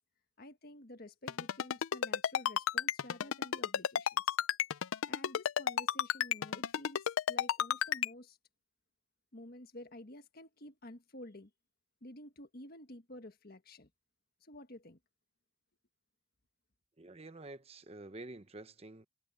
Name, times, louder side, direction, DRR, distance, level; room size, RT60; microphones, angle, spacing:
voice 1, 0.4-4.4 5.1-8.4 9.3-11.5 12.0-13.9 14.4-15.0, left 1 dB, 50° left, 1.6 m, -51 dB
Ringtone, 1.3-8.1, left 9 dB, 85° left, 0.4 m, -31 dB
voice 2, 17.0-19.0, right 2 dB, 30° right, 0.9 m, -49 dB
head